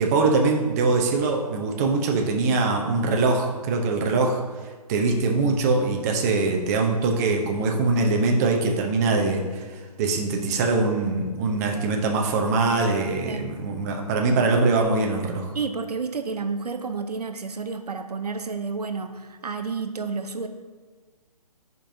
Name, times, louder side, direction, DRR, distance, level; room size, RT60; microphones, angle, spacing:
voice 1, 0.0-4.4 4.9-15.5, right 3 dB, 25° right, 2 dB, 0.7 m, -23 dB
voice 2, 15.5-20.5, right 4 dB, 80° right, 8 dB, 0.6 m, -30 dB
10.0 x 5.3 x 2.7 m, 1.4 s
figure-of-eight pair, 140°, 20 cm